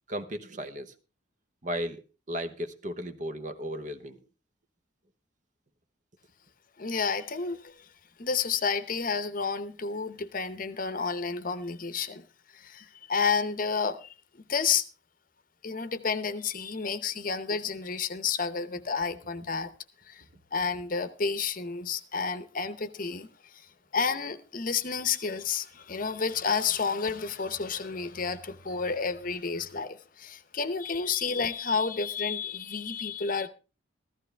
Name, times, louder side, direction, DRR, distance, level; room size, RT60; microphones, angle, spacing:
voice 1, 0.1-0.9 1.6-2.0 2.3-4.2, equal, 40° right, 1.0 m, -35 dB
voice 2, 6.8-7.8 8.2-12.2 12.5-14.1 14.5-14.8 15.6-19.7 20.1-20.2 20.5-23.3 23.9-33.5, left 5 dB, 45° left, 0.8 m, -30 dB
14.5 x 14.0 x 3.4 m
head